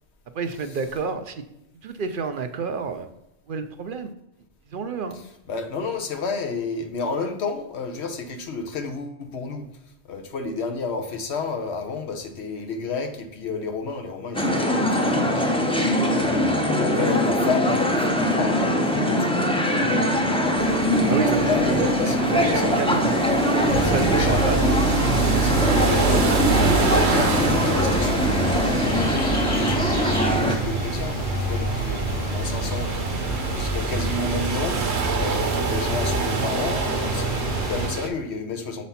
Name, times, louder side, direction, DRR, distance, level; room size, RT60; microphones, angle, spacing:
voice 1, 0.3-1.3 1.8-3.1 3.5-4.1 4.7-5.2 21.1-23.1 23.6-24.8, right 5 dB, 60° right, 9 dB, 0.7 m, -29 dB
voice 2, 5.1-9.7 10.1-21.1 21.5-22.8 23.8-24.8 25.4-38.9, left 4 dB, 75° left, 5 dB, 1.2 m, -32 dB
sound 1, 14.3-30.6, equal, 5° left, 0.6 m, -22 dB
sound 2, 20.6-38.1, right 5 dB, 75° right, 1.2 m, -28 dB
sound 3, 23.7-37.9, right 1 dB, 50° left, 2.2 m, -28 dB
6.7 x 4.2 x 5.6 m, 0.87 s
omnidirectional pair, 1.1 m